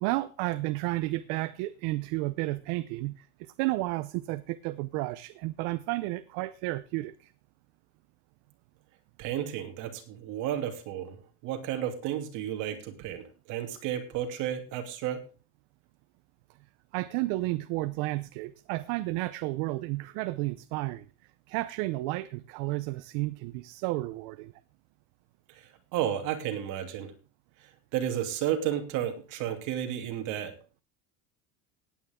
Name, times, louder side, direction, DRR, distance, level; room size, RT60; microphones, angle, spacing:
voice 1, 0.0-7.3 16.9-21.0 21.5-24.5, right 19 dB, 75° right, 0.8 m, -32 dB
voice 2, 9.2-15.2 25.5-27.1 27.9-30.5, right 10 dB, 60° right, 2.8 m, -32 dB
17.5 x 9.4 x 3.7 m
cardioid pair, 170°, 34 cm